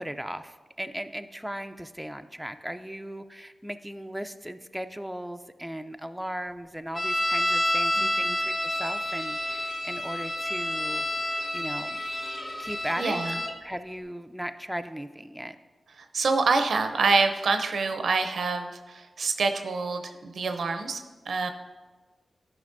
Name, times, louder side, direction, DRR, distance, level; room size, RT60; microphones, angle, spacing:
voice 1, 0.0-12.0 12.6-13.2 13.6-15.6, equal, 5° right, 8 dB, 0.4 m, -37 dB
sound 1, 6.9-13.5, left 1 dB, 40° left, 0.8 m, -29 dB
voice 2, 8.0-8.4 13.0-13.3 16.1-21.5, right 4 dB, 80° right, 7 dB, 0.5 m, -26 dB
11.5 x 4.8 x 2.6 m, 1.3 s
cardioid pair, 55°, 0 cm